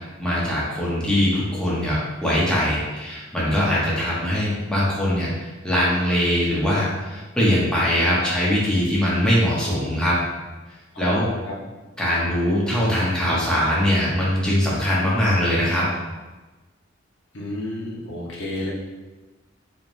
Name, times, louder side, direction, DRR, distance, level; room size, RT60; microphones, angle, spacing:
voice 1, 0.0-10.2 11.0-11.3 12.0-15.9, equal, 5° left, -7 dB, 0.9 m, -22 dB
voice 2, 10.9-11.3 17.3-18.7, left 1 dB, 80° left, -4 dB, 0.9 m, -30 dB
4.0 x 3.4 x 2.6 m, 1.2 s
head